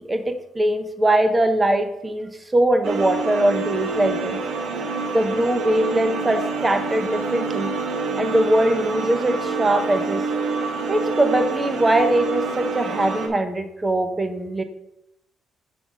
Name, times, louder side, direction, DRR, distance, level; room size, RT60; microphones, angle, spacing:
voice 1, 0.0-4.4 5.1-7.7 8.2-10.2 10.9-14.6, right 1 dB, 20° right, 8 dB, 1.0 m, -21 dB
sound 1, 2.8-13.3, right 4 dB, 75° right, 1.1 m, -27 dB
6.2 x 5.1 x 5.0 m, 0.81 s
cardioid pair, 90°, 0 cm